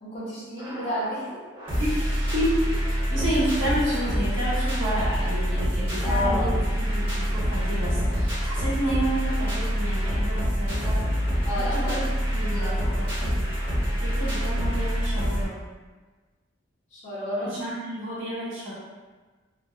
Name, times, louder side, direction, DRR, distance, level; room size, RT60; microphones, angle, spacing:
voice 1, 0.0-1.2 6.0-6.5 11.4-12.0 12.4-12.7 16.9-17.5, equal, 35° left, -12 dB, 0.8 m, -31 dB
sound 1, 0.6-15.4, equal, 30° right, 1.0 m, -26 dB
voice 2, 2.3-11.0 11.3-13.5 14.0-15.6 17.4-18.7, right 1 dB, 75° right, -7 dB, 0.8 m, -30 dB
2.6 x 2.2 x 2.3 m, 1.3 s
head